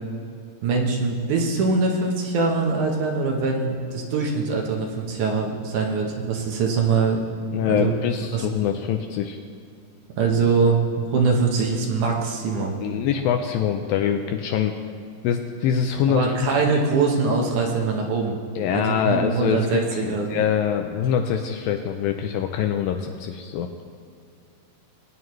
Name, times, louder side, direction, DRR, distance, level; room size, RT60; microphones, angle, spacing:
voice 1, 0.6-7.2 7.5-7.9 8.3-8.5 10.2-12.8 16.1-18.4 18.7-20.4, right 4 dB, 70° right, 0 dB, 2.0 m, -23 dB
voice 2, 7.5-9.4 12.8-14.8 15.2-16.3 18.6-23.7, left 8 dB, 85° left, 5 dB, 2.0 m, -24 dB
20.5 x 9.2 x 3.1 m, 2.3 s
omnidirectional pair, 4.6 m